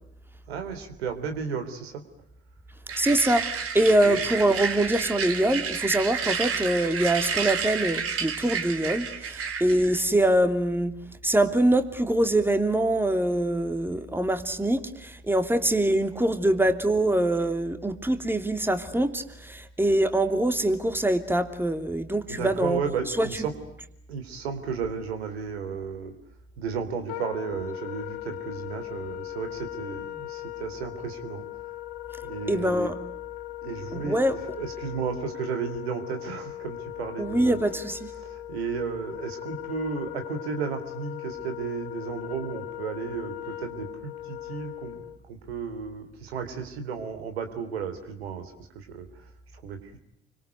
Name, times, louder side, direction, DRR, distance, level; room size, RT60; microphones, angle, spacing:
voice 1, 0.5-2.0 4.0-4.2 22.3-23.5 24.1-26.2 26.6-31.4 32.2-32.9 33.6-37.6 38.0-50.0, right 6 dB, 80° right, 7 dB, 3.6 m, -34 dB
sound 1, 2.9-10.0, right 6 dB, 45° right, 3.9 m, -30 dB
voice 2, 3.0-10.9 11.2-22.8 23.2-23.3 32.5-33.0 33.9-34.3 37.2-38.1, right 1 dB, 5° right, 8 dB, 2.9 m, -24 dB
Wind instrument woodwind instrument, 27.1-45.2, left 16 dB, 70° left, 1.5 m, -39 dB
30.0 x 25.0 x 8.0 m, 0.76 s
figure-of-eight pair, 55°, 31 cm